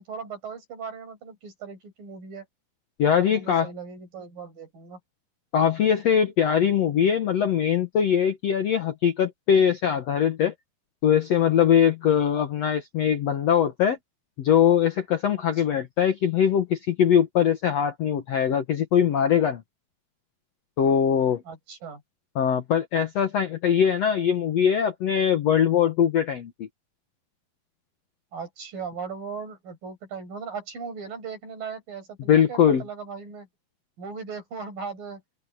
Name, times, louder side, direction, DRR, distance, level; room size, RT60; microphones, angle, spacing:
voice 1, 0.0-2.5 3.1-5.0 15.6-15.8 21.5-22.0 28.3-33.5 34.0-35.2, right 5 dB, 60° right, 9.0 m, -38 dB
voice 2, 3.0-3.7 5.5-10.5 11.0-14.0 14.4-19.6 20.8-21.4 22.3-26.7 32.3-32.8, left 8 dB, 65° left, 1.7 m, -22 dB
open air
omnidirectional pair, 4.5 m